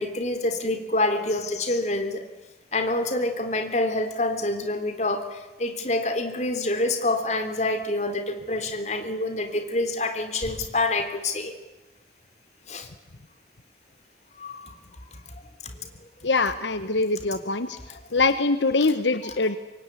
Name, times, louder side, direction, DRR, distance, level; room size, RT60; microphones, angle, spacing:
voice 1, 0.0-2.2 2.7-11.5 12.7-12.9 14.4-14.7 15.1-15.2 15.6-15.9 16.2-16.3 19.2-19.3, left 2 dB, 40° left, 7 dB, 3.5 m, -27 dB
voice 2, 16.2-17.8 18.1-19.6, left 3 dB, 80° left, 11 dB, 1.2 m, -23 dB
26.0 x 22.5 x 9.8 m, 1.1 s
head